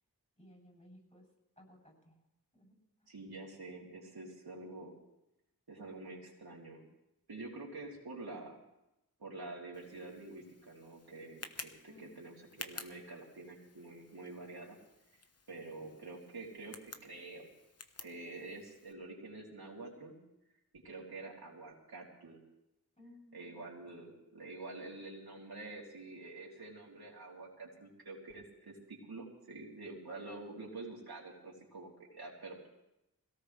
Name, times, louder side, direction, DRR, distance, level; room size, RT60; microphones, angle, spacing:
voice 1, 0.4-1.3 1.6-2.2 2.5-3.1 11.9-12.2 23.0-23.8, left 1 dB, 20° left, 1 dB, 7.8 m, -59 dB
voice 2, 3.1-4.9 5.7-6.8 7.3-8.6 9.2-14.8 15.5-17.5 18.0-20.2 20.8-22.4 23.3-32.6, right 2 dB, 80° right, -4 dB, 3.1 m, -47 dB
Tick, 9.7-18.9, left 4 dB, 40° left, 1.0 m, -52 dB
21.0 x 17.5 x 3.3 m, 0.88 s
wide cardioid pair, 65°, 37 cm